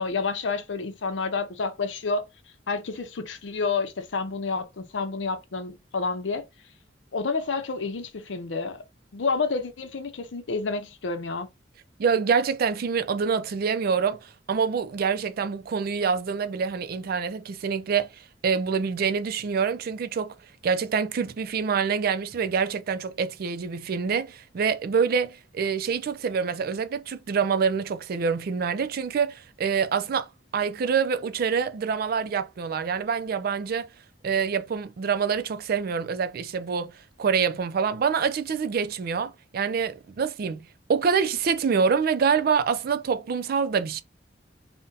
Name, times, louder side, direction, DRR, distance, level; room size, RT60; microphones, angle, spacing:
voice 1, 0.0-2.2 2.7-6.4 7.1-8.8 9.1-11.5, left 4 dB, 80° left, 0.6 m, -29 dB
voice 2, 12.0-18.1 18.4-20.3 20.6-33.9 34.2-44.0, right 6 dB, 55° right, 0.4 m, -26 dB
2.6 x 2.1 x 3.7 m
head